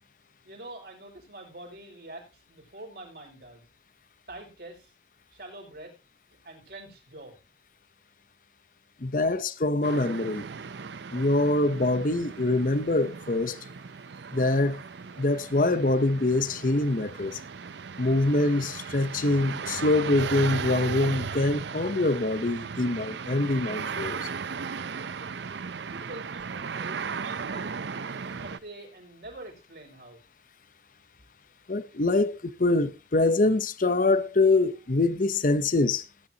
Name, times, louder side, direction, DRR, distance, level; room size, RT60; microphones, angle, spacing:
voice 1, 0.4-3.7 4.3-4.9 5.3-5.9 6.4-7.4 25.9-27.8 28.4-30.2, right 1 dB, 55° right, 5.7 m, -45 dB
voice 2, 9.0-10.5 11.1-13.6 14.3-14.8 15.2-17.4 18.0-24.3 31.7-36.0, left 2 dB, 45° left, 0.8 m, -24 dB
sound 1, 9.8-28.6, right 5 dB, 70° right, 0.6 m, -36 dB
18.0 x 10.0 x 2.8 m
head